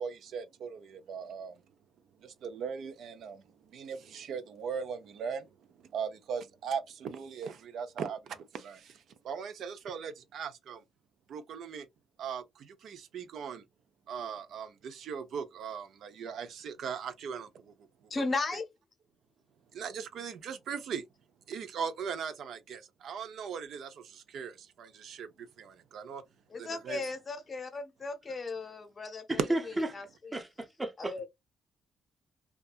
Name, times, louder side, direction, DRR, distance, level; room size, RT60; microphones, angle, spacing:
voice 1, 0.0-1.6 2.2-5.5 5.8-10.8 11.3-11.9 12.2-13.6 14.1-17.7 18.5-18.6 19.7-21.0 21.5-26.2 26.5-27.1, right 6 dB, 70° right, 0.4 m, -39 dB
voice 2, 18.1-18.7 26.5-29.4 29.9-30.4 31.0-31.3, left 3 dB, 35° left, 0.7 m, -36 dB
voice 3, 29.3-29.9 30.3-31.1, right 1 dB, 15° right, 0.6 m, -33 dB
2.6 x 2.3 x 2.2 m
cardioid pair, 90°, 0 cm